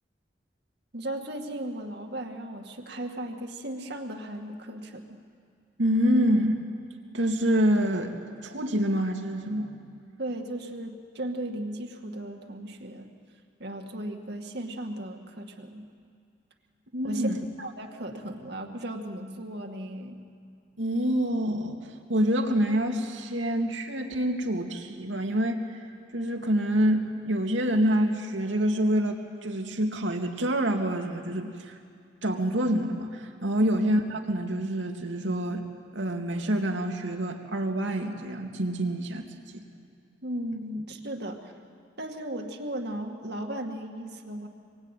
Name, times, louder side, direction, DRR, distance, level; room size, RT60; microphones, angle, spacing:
voice 1, 0.9-5.2 10.2-13.1 13.6-15.9 17.0-17.3 17.6-20.2 40.2-41.5 42.0-44.5, right 1 dB, 60° right, 3 dB, 2.2 m, -36 dB
voice 2, 5.8-6.6 7.1-8.1 8.4-9.7 16.9-17.4 20.8-25.6 26.1-31.8 32.2-35.6 35.9-39.6, equal, 80° right, 3 dB, 2.5 m, -26 dB
27.0 x 22.5 x 9.2 m, 2.3 s
head